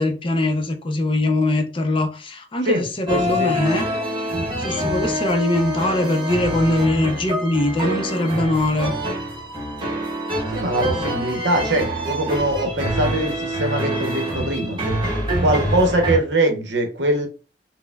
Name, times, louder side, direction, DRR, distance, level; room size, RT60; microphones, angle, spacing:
voice 1, 0.0-3.9 4.6-9.0, left 1 dB, 30° left, 0.5 m, -21 dB
sound 1, 3.1-16.2, equal, 30° right, 0.9 m, -26 dB
voice 2, 3.1-3.5 10.5-14.8 15.4-17.3, right 1 dB, 70° right, 0.8 m, -22 dB
4.2 x 2.1 x 2.2 m
head